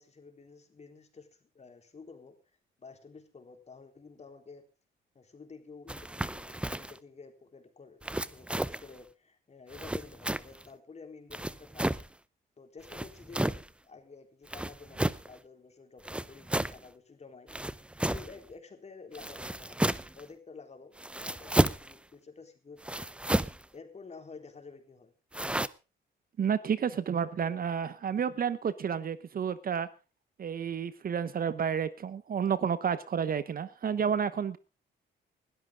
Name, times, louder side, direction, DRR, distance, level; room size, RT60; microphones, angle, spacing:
voice 1, 0.0-2.4 2.8-4.7 5.1-12.0 12.6-17.5 18.1-23.1 23.7-25.1, left 4 dB, 35° left, 5 dB, 4.0 m, -51 dB
sound 1, 5.9-7.0 8.0-8.9 9.7-10.7 11.3-12.1 12.8-13.7 14.5-15.3 16.0-16.8 17.5-18.4 19.1-20.2 21.0-21.9 22.8-23.6 25.3-25.7, right 1 dB, 5° right, 0.6 m, -32 dB
voice 2, 26.4-29.9 30.4-34.6, right 7 dB, 45° right, 15 dB, 1.0 m, -30 dB
20.0 x 13.0 x 3.8 m, 0.32 s
cardioid pair, 90°, 20 cm